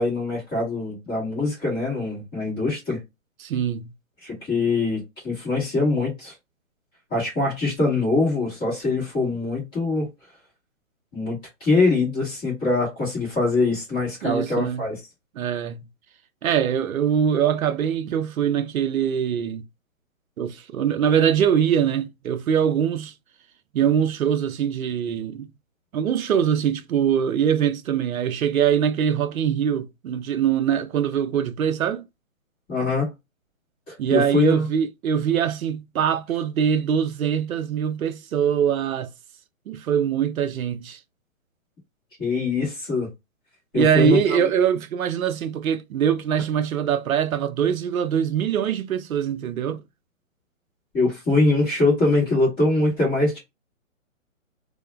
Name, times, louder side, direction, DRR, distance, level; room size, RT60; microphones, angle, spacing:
voice 1, 0.0-3.0 4.2-6.3 7.1-10.1 11.1-15.0 32.7-33.1 33.9-34.7 42.2-43.1 43.7-44.4 50.9-53.4, left 3 dB, 10° left, 1.0 m, -23 dB
voice 2, 3.4-3.9 14.2-14.9 15.4-15.8 16.4-19.6 20.4-23.1 23.7-25.5 25.9-32.0 34.0-39.1 39.7-41.0 43.7-49.8, right 8 dB, 90° right, 0.5 m, -23 dB
2.2 x 2.1 x 3.0 m
hypercardioid pair, 150°, 40 cm